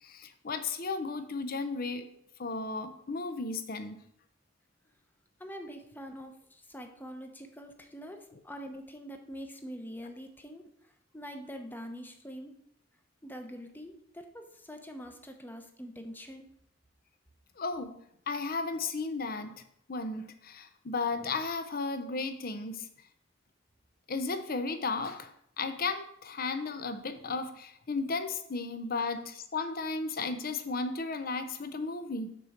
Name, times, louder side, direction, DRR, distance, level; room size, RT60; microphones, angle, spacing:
voice 1, 0.0-2.1 2.4-4.0 17.6-18.0 18.3-19.6 19.9-22.9 24.1-25.3 25.6-32.4, left 4 dB, 50° left, 9 dB, 0.7 m, -34 dB
voice 2, 5.4-10.7 11.1-12.5 13.2-16.5, equal, 10° left, 5 dB, 0.8 m, -44 dB
6.2 x 4.5 x 6.5 m, 0.72 s
head